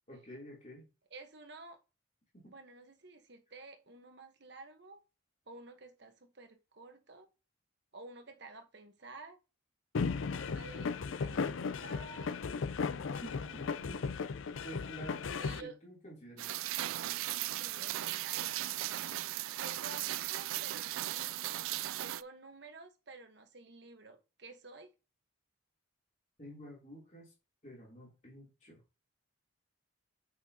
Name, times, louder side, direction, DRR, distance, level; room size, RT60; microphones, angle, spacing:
voice 1, 0.1-0.8 2.3-2.5 13.2-13.3 14.6-16.5 16.9-17.1 17.9-18.0 26.4-27.3 27.6-28.8, equal, 35° left, 3.1 m, -50 dB
voice 2, 1.1-1.8 2.4-5.0 5.5-7.3 7.9-9.4 10.4-12.3 13.2-13.9 15.4-15.8 17.6-18.6 19.6-21.7 22.0-24.9, right 3 dB, 55° right, 1.1 m, -52 dB
sound 1, 9.9-15.6, left 5 dB, 70° left, 0.4 m, -36 dB
Rain, 16.4-22.2, right 15 dB, 80° right, 0.3 m, -37 dB
8.2 x 6.0 x 2.8 m
head